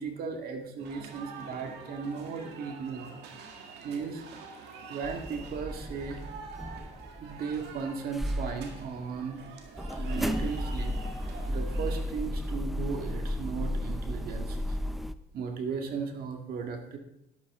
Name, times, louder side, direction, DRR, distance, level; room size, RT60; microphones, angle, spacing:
voice 1, 0.0-3.1 3.6-4.3 4.9-6.2 7.2-9.4 9.9-11.0 11.5-14.8 15.3-17.0, right 5 dB, 60° right, 4 dB, 2.0 m, -36 dB
sound 1, 0.8-12.0, right 4 dB, 80° right, 2.0 m, -46 dB
sound 2, 5.0-7.8 8.1-15.1, equal, ahead, 0.5 m, -34 dB
12.0 x 11.5 x 3.7 m, 0.81 s
cardioid pair, 110°, 17 cm